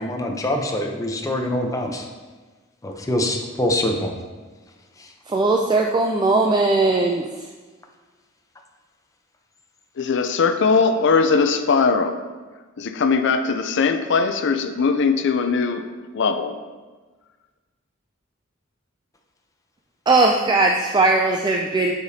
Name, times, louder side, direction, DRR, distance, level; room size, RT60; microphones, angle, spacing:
voice 1, 0.0-2.1 2.8-4.1 5.0-5.1, left 1 dB, 15° left, 2 dB, 0.7 m, -24 dB
voice 2, 5.3-7.2 20.1-21.9, right 3 dB, 20° right, 2 dB, 0.3 m, -19 dB
voice 3, 10.0-12.2 12.8-15.9 16.1-16.6, left 4 dB, 60° left, 8 dB, 0.5 m, -20 dB
8.7 x 5.1 x 2.8 m, 1.3 s
head